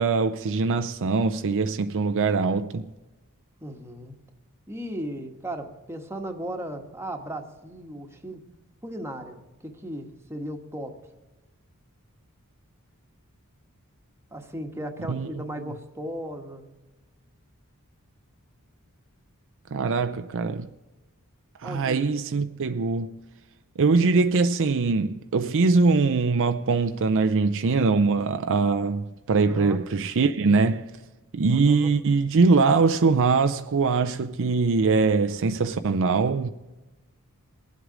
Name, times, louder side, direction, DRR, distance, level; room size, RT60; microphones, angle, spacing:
voice 1, 0.0-2.9 15.1-15.3 15.6-15.7 19.7-20.7 21.6-23.2 23.8-30.9 31.3-36.5, right 4 dB, 60° right, 0.5 m, -22 dB
voice 2, 3.6-4.2 4.7-8.4 8.8-9.4 9.6-11.0 14.3-16.6 21.6-22.2 29.5-29.8 31.5-31.9, right 1 dB, 10° right, 1.3 m, -36 dB
22.5 x 8.0 x 5.0 m
head